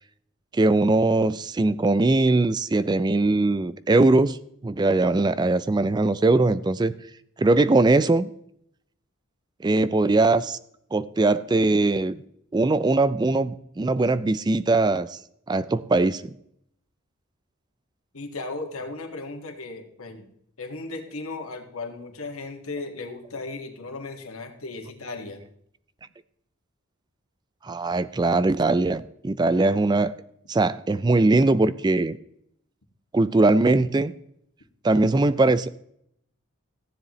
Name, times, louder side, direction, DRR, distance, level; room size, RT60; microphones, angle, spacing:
voice 1, 0.5-4.4 4.6-6.9 7.4-8.3 9.6-10.6 10.9-12.2 12.5-15.2 15.5-16.3 27.6-30.1 30.5-32.2 33.1-34.1 34.8-35.8, right 2 dB, 20° right, 15 dB, 0.3 m, -21 dB
voice 2, 18.1-20.3 20.6-25.4, left 3 dB, 85° left, 4 dB, 1.9 m, -36 dB
15.0 x 10.0 x 3.1 m, 0.71 s
head